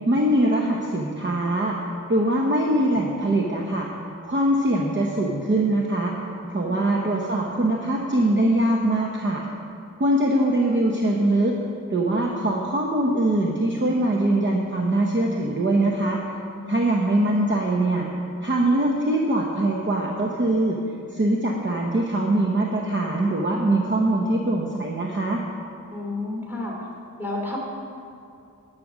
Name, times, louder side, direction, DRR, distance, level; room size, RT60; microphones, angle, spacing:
voice 1, 0.1-1.8 2.1-3.9 4.2-6.1 6.5-9.4 10.0-11.6 11.9-16.2 16.7-18.1 18.4-20.8 21.1-25.4, right 1 dB, 35° right, -1 dB, 0.9 m, -22 dB
voice 2, 25.9-26.8 27.2-27.7, left 2 dB, 5° right, -2 dB, 3.0 m, -31 dB
11.0 x 6.6 x 6.1 m, 2.5 s
wide cardioid pair, 85°, 32 cm